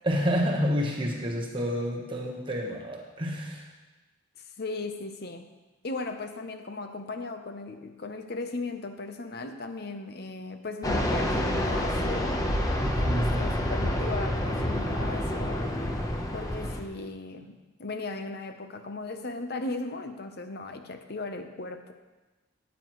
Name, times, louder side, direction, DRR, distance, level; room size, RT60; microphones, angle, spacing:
voice 1, 0.0-3.7 12.8-13.4, equal, 25° right, -1 dB, 1.1 m, -29 dB
voice 2, 4.6-5.5 5.8-12.5 13.1-15.7 16.3-21.9, left 3 dB, 50° left, 7 dB, 0.8 m, -37 dB
Fixed-wing aircraft airplane, 10.8-16.8, left 1 dB, 15° left, 0.8 m, -28 dB
14.0 x 9.3 x 3.1 m, 1.2 s
head